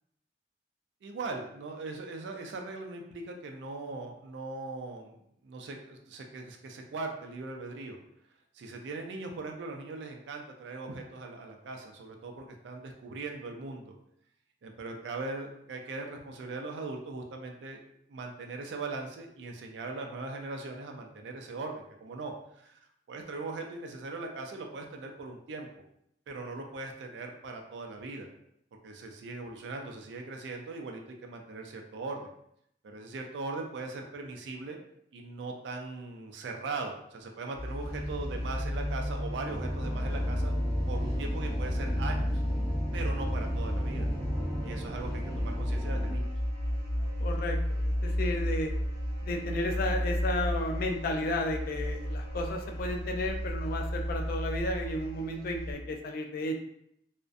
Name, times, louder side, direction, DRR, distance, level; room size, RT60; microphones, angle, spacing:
voice 1, 1.0-5.2 5.4-8.0 8.5-13.9 14.6-17.8 18.1-22.8 23.1-25.7 26.3-28.3 28.8-32.3 32.8-34.8 35.1-40.5 40.9-42.4 42.9-44.1 44.6-46.3, right 3 dB, 80° right, 3 dB, 0.4 m, -40 dB
sound 1, 37.5-55.7, equal, 60° right, 0.7 m, -33 dB
sound 2, 37.8-45.6, equal, 20° left, 0.7 m, -41 dB
sound 3, 39.4-46.1, equal, 15° right, 0.4 m, -37 dB
voice 2, 47.2-48.7 49.2-56.5, left 1 dB, 55° left, 4 dB, 0.3 m, -33 dB
2.4 x 2.1 x 2.4 m, 0.74 s
head